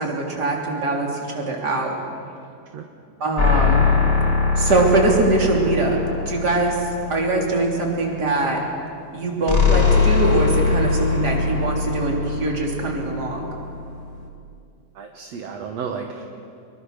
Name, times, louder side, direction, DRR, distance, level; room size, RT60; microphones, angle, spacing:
voice 1, 0.0-2.0 3.2-3.9 4.6-6.0 6.3-6.8 7.1-8.6 9.1-13.5, right 2 dB, 30° right, 0 dB, 3.5 m, -22 dB
sound 1, 3.4-7.9 9.5-14.2, left 4 dB, 25° left, 1.8 m, -22 dB
voice 2, 14.9-16.2, right 6 dB, 60° right, 3 dB, 2.0 m, -32 dB
25.5 x 22.5 x 6.6 m, 2.5 s
omnidirectional pair, 4.1 m